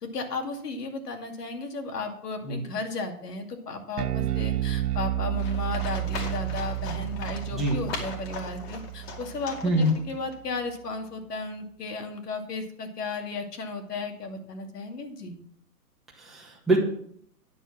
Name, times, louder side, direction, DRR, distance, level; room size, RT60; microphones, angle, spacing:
voice 1, 0.0-15.3, left 3 dB, 80° left, 4 dB, 2.4 m, -34 dB
Bass guitar, 4.0-10.4, right 13 dB, 70° right, 0.8 m, -31 dB
Livestock farm animals working animals, 5.4-10.3, left 4 dB, 40° left, 2.3 m, -40 dB
voice 2, 16.2-16.8, right 1 dB, ahead, -4 dB, 1.5 m, -24 dB
10.0 x 6.7 x 6.3 m, 0.65 s
hypercardioid pair, 145°, 47 cm